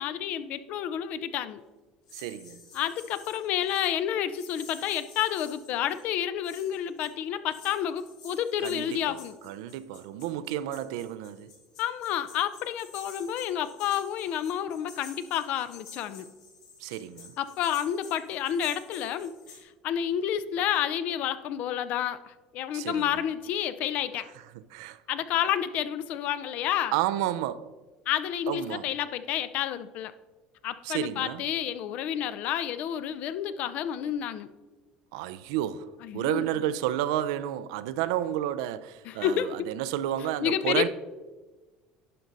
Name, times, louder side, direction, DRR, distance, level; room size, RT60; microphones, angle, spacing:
voice 1, 0.0-1.6 2.7-9.3 11.8-16.3 17.4-24.3 25.1-26.9 28.1-30.1 30.6-34.5 36.0-36.4 39.1-39.7 40.4-40.9, left 10 dB, 60° left, 0.5 m, -30 dB
sound 1, 2.1-3.9 4.3-6.2 6.4-7.1 7.5-19.6, left 5 dB, 80° left, 3.0 m, -50 dB
voice 2, 2.1-2.6 8.6-9.0 9.4-11.5 16.8-17.3 22.7-23.2 24.7-25.0 26.9-27.7 28.5-28.9 30.8-31.4 35.1-40.9, right 12 dB, 90° right, 0.4 m, -31 dB
11.0 x 5.4 x 3.9 m
supercardioid pair, 115°, 3 cm